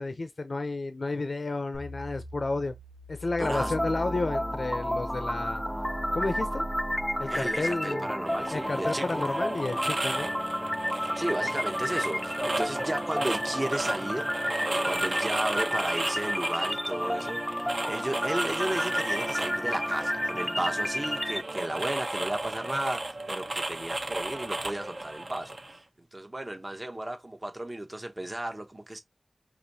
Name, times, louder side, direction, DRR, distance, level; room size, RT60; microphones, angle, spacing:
voice 1, 0.0-2.7 3.1-5.6 6.1-6.6 7.2-8.1 8.5-10.3, left 3 dB, 75° left, 0.5 m, -31 dB
sound 1, 1.7-8.0, equal, 90° right, 1.1 m, -40 dB
sound 2, 3.4-21.4, equal, 5° left, 0.4 m, -31 dB
voice 2, 3.4-3.7 7.3-9.2 10.9-14.3 14.6-25.6 26.1-29.0, right 1 dB, 30° right, 0.8 m, -34 dB
sound 3, 8.3-25.8, right 2 dB, 65° right, 1.2 m, -35 dB
4.9 x 3.1 x 2.7 m
wide cardioid pair, 55°, 0 cm